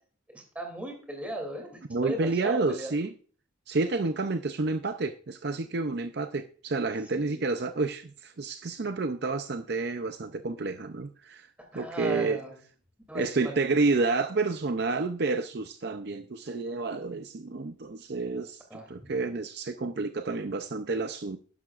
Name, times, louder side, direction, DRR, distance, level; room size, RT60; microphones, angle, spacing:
voice 1, 0.3-2.9 7.0-7.4 11.6-12.6 13.1-13.5 18.7-19.1, right 1 dB, 5° right, 2 dB, 2.8 m, -38 dB
voice 2, 1.9-3.1 3.7-11.5 11.7-12.4 13.1-18.6 18.9-21.4, right 3 dB, 50° right, 8 dB, 0.5 m, -29 dB
12.0 x 11.0 x 2.5 m, 0.42 s
head